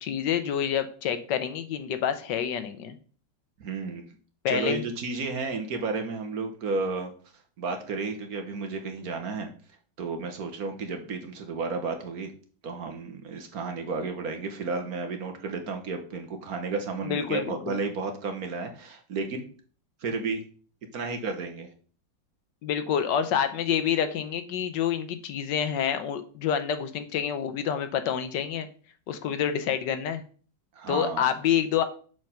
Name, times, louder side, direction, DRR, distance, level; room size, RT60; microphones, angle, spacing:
voice 1, 0.0-3.0 4.4-4.8 17.0-17.7 22.6-28.7 29.1-30.2 30.9-31.8, left 8 dB, 75° left, 10 dB, 1.4 m, -27 dB
voice 2, 3.6-4.1 4.5-7.1 7.6-9.5 10.0-12.3 12.6-19.4 20.0-20.4 20.9-21.7 30.7-31.2, right 4 dB, 55° right, 5 dB, 1.4 m, -32 dB
6.4 x 4.8 x 5.6 m, 0.42 s
omnidirectional pair, 2.0 m